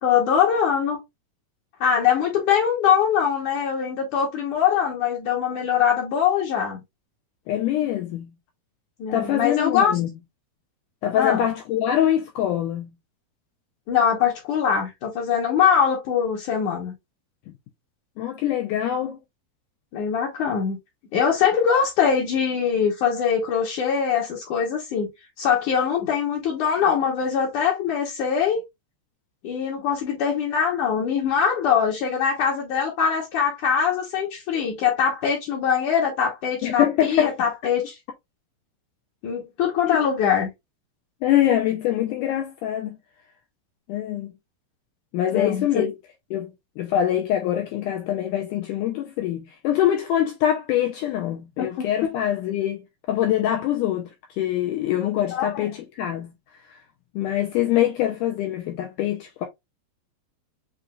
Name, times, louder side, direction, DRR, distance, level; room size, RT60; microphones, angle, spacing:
voice 1, 0.0-1.0 1.8-6.8 9.0-9.9 11.1-11.4 13.9-16.9 19.9-20.8 21.1-25.1 25.4-28.6 29.4-38.0 39.2-40.5 45.3-45.8 51.6-52.1 55.3-55.7, left 7 dB, 65° left, 2.2 m, -22 dB
voice 2, 7.5-8.3 9.1-10.1 11.0-12.9 18.2-19.2 36.6-37.3 39.9-40.0 41.2-43.0 43.9-44.3 45.1-45.9 46.3-46.5 46.8-52.8 53.1-54.1 54.4-56.3 56.6-56.8 57.2-59.5, left 11 dB, 85° left, 1.8 m, -24 dB
7.6 x 2.6 x 2.3 m
omnidirectional pair, 4.2 m